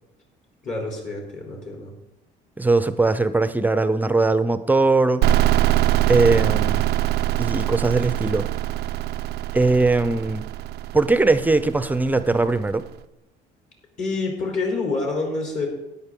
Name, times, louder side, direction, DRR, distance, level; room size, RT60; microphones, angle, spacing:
voice 1, 0.6-1.9 14.0-15.7, left 3 dB, 50° left, 3.7 m, -27 dB
voice 2, 2.6-5.2 6.1-6.9 7.4-8.5 9.5-10.5 10.9-12.9, right 3 dB, 10° right, 0.6 m, -20 dB
sound 1, 5.2-12.8, right 13 dB, 70° right, 0.4 m, -23 dB
13.0 x 9.8 x 3.7 m
cardioid pair, 110°, 17 cm